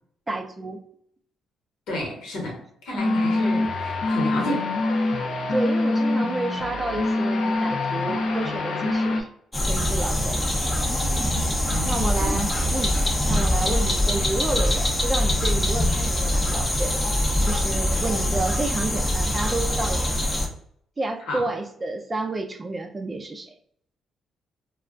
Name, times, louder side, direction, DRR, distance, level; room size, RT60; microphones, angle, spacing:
voice 1, 0.3-0.8 5.5-9.3 9.6-10.4 11.9-17.0 17.5-20.1 21.0-23.5, right 2 dB, 25° right, 6 dB, 0.4 m, -30 dB
voice 2, 1.9-4.7 10.6-12.5 13.6-13.8 21.3-21.5, left 1 dB, 80° left, -1 dB, 1.2 m, -32 dB
sound 1, 3.0-9.2, left 2 dB, 60° left, 0.5 m, -24 dB
sound 2, 9.5-20.5, left 1 dB, 15° left, 0.6 m, -23 dB
2.3 x 2.2 x 3.6 m, 0.67 s
cardioid pair, 90°, 0 cm